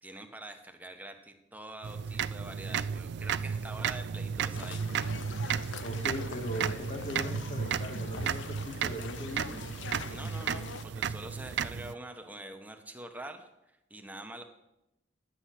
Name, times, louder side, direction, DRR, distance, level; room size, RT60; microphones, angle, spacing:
voice 1, 0.0-4.8 10.1-14.4, right 1 dB, 10° right, 5 dB, 1.1 m, -45 dB
sound 1, 1.8-11.9, right 7 dB, 65° right, 0.4 m, -34 dB
sound 2, 4.5-10.8, left 6 dB, 90° left, 0.6 m, -44 dB
voice 2, 5.8-9.6, equal, 40° left, 2 dB, 1.9 m, -39 dB
11.0 x 8.3 x 5.9 m, 0.88 s
head